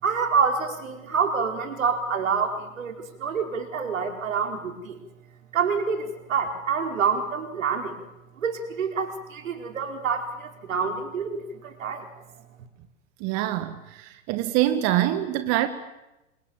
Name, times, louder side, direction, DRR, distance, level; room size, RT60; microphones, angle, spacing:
voice 1, 0.0-5.0 5.5-7.9 8.4-12.1, right 6 dB, 80° right, 4 dB, 4.9 m, -27 dB
voice 2, 13.2-15.7, right 14 dB, 40° right, 9 dB, 1.9 m, -25 dB
30.0 x 25.5 x 7.4 m, 0.98 s
hypercardioid pair, 115°, 39 cm